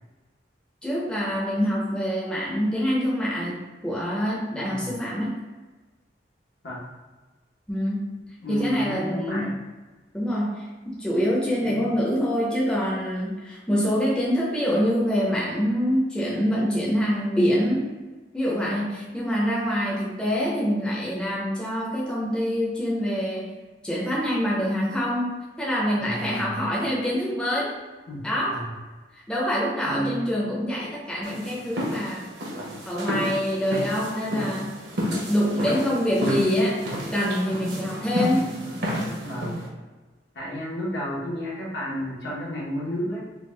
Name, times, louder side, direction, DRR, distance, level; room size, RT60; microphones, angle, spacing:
voice 1, 0.8-5.4 7.7-8.1 8.5-9.5 10.1-17.9 18.3-23.5 23.8-27.7 28.2-28.7 29.1-32.3 32.9-34.8 35.3-36.8 37.1-38.5, equal, 5° left, -6 dB, 0.5 m, -25 dB
voice 2, 4.5-5.0 6.6-6.9 8.4-9.6 11.6-11.8 26.0-26.7 28.1-28.7 29.9-30.2 39.2-39.6 40.3-43.2, equal, 75° left, -6 dB, 1.1 m, -32 dB
sound 1, 31.2-39.7, equal, 75° right, 0.8 m, -30 dB
3.4 x 2.3 x 3.3 m, 1.3 s
head